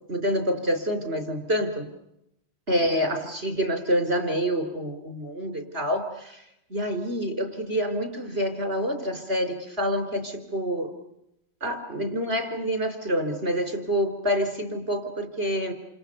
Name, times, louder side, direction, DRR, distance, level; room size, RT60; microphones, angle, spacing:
voice 1, 0.1-1.9 2.7-6.4 6.7-10.9 11.6-15.7, equal, 80° right, 6 dB, 4.8 m, -27 dB
28.5 x 28.5 x 6.9 m, 0.82 s
omnidirectional pair, 1.1 m